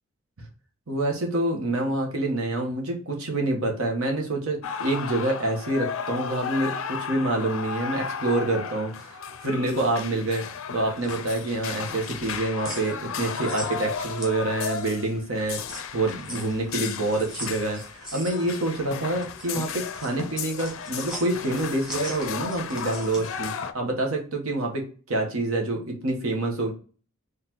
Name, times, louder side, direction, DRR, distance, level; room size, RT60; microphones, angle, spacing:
voice 1, 0.9-10.4 10.7-15.6 15.9-26.7, right 2 dB, 75° right, 2 dB, 1.1 m, -27 dB
sound 1, 4.6-23.7, left 6 dB, 70° left, 0.4 m, -34 dB
sound 2, 11.0-14.9 15.3-23.4, equal, 5° right, 1.2 m, -41 dB
4.0 x 3.2 x 2.9 m, 0.39 s
head